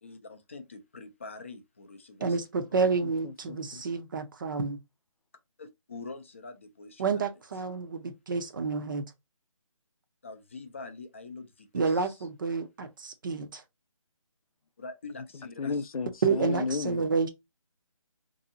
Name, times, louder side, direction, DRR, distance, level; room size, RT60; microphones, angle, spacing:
voice 1, 0.0-2.8 5.6-7.2 10.2-12.1 14.8-15.9, left 3 dB, 20° left, 0.4 m, -45 dB
voice 2, 2.2-4.8 7.0-9.0 11.7-13.6 16.2-17.3, right 4 dB, 35° right, 0.6 m, -29 dB
voice 3, 3.0-3.8 15.6-17.0, left 4 dB, 80° left, 0.5 m, -33 dB
3.9 x 2.7 x 2.7 m
figure-of-eight pair, 160°, 18 cm